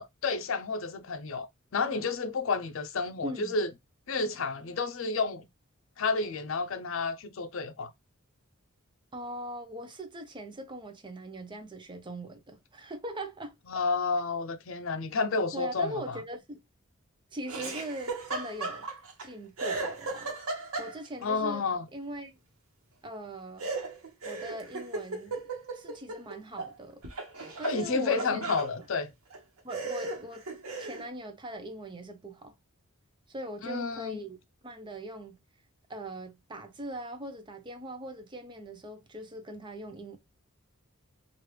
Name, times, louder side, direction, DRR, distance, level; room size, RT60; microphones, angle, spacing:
voice 1, 0.0-3.7 4.1-5.5 6.0-7.9 13.7-16.2 21.2-21.9 27.6-29.1 33.6-34.2, left 4 dB, 65° left, 0.5 m, -30 dB
voice 2, 3.2-3.5 9.1-13.5 15.5-16.6 17.3-18.9 19.2-20.3 20.8-21.6 21.9-22.3 23.0-23.7 24.2-25.4 25.7-27.0 27.6-28.5 29.6-30.4 30.8-32.5 33.3-34.4 34.6-35.4 35.9-40.2, right 1 dB, 20° right, 0.5 m, -41 dB
Laughter, 17.5-19.3 19.6-21.2 23.6-26.7 27.0-28.7 29.3-29.4 29.7-31.1, right 3 dB, 85° right, 1.1 m, -36 dB
3.2 x 2.5 x 3.1 m
head